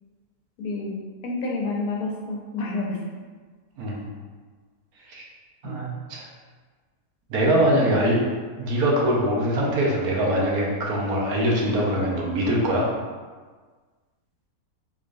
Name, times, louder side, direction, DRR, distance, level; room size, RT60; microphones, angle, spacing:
voice 1, 0.6-1.0 1.2-3.0 5.6-5.9 7.4-7.5, left 3 dB, 80° left, -2 dB, 1.2 m, -29 dB
voice 2, 5.6-6.2 7.3-8.2 8.6-12.9, right 1 dB, 90° right, -2 dB, 1.3 m, -23 dB
3.7 x 3.2 x 2.5 m, 1.4 s
omnidirectional pair, 1.6 m